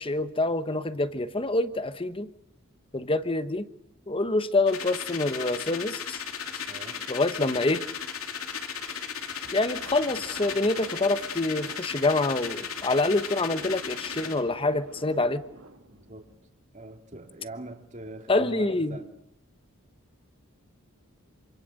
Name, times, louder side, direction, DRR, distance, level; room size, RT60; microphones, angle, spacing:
voice 1, 0.0-2.3 2.9-3.7 4.1-6.2 7.1-7.8 9.5-15.4 18.3-19.0, left 2 dB, 25° left, 12 dB, 1.0 m, -26 dB
sound 1, 4.7-14.4, left 7 dB, 85° left, 2.9 m, -36 dB
voice 2, 6.7-7.0 15.9-16.3 16.7-19.1, right 2 dB, 35° right, 5 dB, 2.5 m, -43 dB
sound 2, 9.4-16.4, right 2 dB, 85° right, 2.4 m, -50 dB
27.0 x 25.5 x 6.5 m, 0.78 s
head